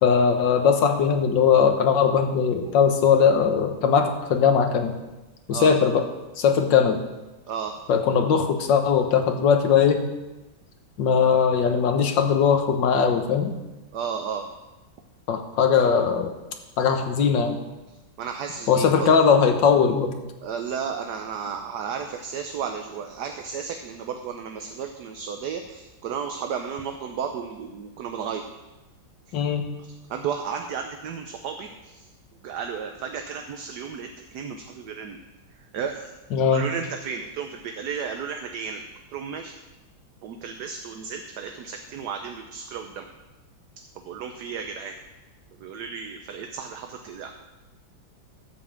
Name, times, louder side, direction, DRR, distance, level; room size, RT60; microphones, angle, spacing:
voice 1, 0.0-4.9 5.5-6.0 6.4-7.0 7.9-10.0 11.0-13.5 15.3-16.3 16.8-17.6 18.7-20.1 29.3-29.6 36.3-36.7, left 6 dB, 70° left, 5 dB, 1.7 m, -20 dB
voice 2, 13.9-14.5 18.2-19.1 20.4-28.4 29.8-32.0 32.4-35.2 35.7-36.1 36.5-38.8 39.1-39.5 40.2-43.1 44.1-44.9 45.6-47.3, right 6 dB, 65° right, 5 dB, 1.2 m, -33 dB
12.0 x 5.3 x 7.3 m, 1.1 s
omnidirectional pair, 2.1 m